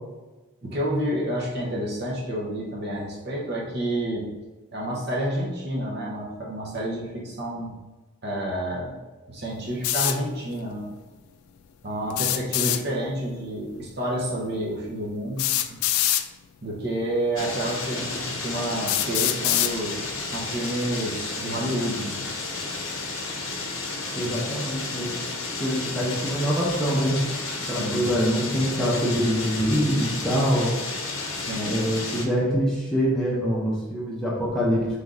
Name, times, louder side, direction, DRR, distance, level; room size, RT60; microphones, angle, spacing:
voice 1, 0.6-4.3 4.7-7.7 8.2-9.0 9.3-10.9 11.8-15.8 16.6-20.0 20.2-22.2 27.6-28.0 31.3-31.8, right 1 dB, 50° right, -3 dB, 0.9 m, -29 dB
sound 1, 9.8-10.2 12.1-12.8 14.3-14.4 15.4-16.3 17.3-17.4 18.0-18.1 18.9-19.7, left 12 dB, 85° left, 0.3 m, -24 dB
sound 2, 17.4-32.3, left 3 dB, 65° left, 0.7 m, -32 dB
voice 2, 24.1-25.1 25.6-27.2 27.7-30.7 31.6-34.9, equal, 5° left, -6 dB, 0.8 m, -24 dB
3.8 x 3.5 x 3.8 m, 1.2 s
head